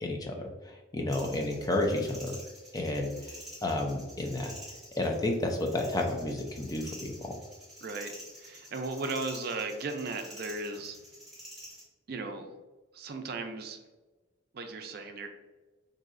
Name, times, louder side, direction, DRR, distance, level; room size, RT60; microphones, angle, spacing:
voice 1, 0.0-2.4 2.7-3.1 3.6-4.5 5.0-7.4, left 1 dB, 20° left, 2 dB, 0.4 m, -31 dB
sound 1, 1.1-11.8, equal, ahead, 1.2 m, -49 dB
voice 2, 7.8-8.1 8.4-11.0 12.1-12.5 12.9-13.8 14.5-15.3, right 3 dB, 50° right, 5 dB, 0.4 m, -36 dB
4.1 x 2.6 x 2.5 m, 1.2 s
head